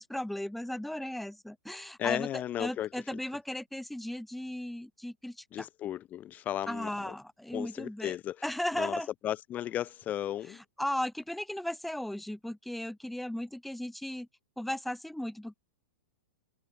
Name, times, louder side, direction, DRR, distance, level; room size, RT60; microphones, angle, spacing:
voice 1, 0.0-5.7 6.7-8.2 8.4-9.1 10.4-14.3 14.6-15.5, left 1 dB, ahead, 2.4 m, -36 dB
voice 2, 2.0-2.9 5.5-6.9 7.5-8.4 8.8-8.9 9.2-10.6, left 12 dB, 20° left, 2.1 m, -34 dB
hypercardioid pair, 165°, 8 cm